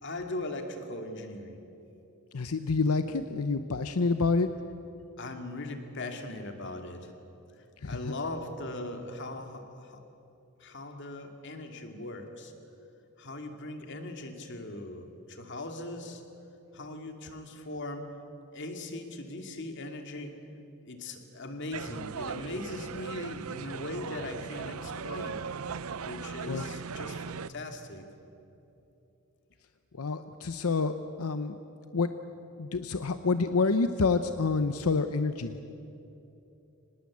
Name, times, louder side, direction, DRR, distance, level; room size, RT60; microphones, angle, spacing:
voice 1, 0.0-1.6 5.2-7.1 7.8-10.0 10.6-12.5 13.2-16.2 16.7-18.1 18.5-20.4 20.9-25.4 26.0-28.0, left 2 dB, 55° left, 5 dB, 2.4 m, -39 dB
voice 2, 2.3-4.5 7.8-8.1 26.4-26.6 30.0-31.6 31.9-32.1 32.6-35.6, left 4 dB, 90° left, 10 dB, 0.8 m, -28 dB
sound 1, 21.7-27.5, right 6 dB, 80° right, 0.6 m, -38 dB
25.0 x 20.0 x 8.5 m, 2.9 s
head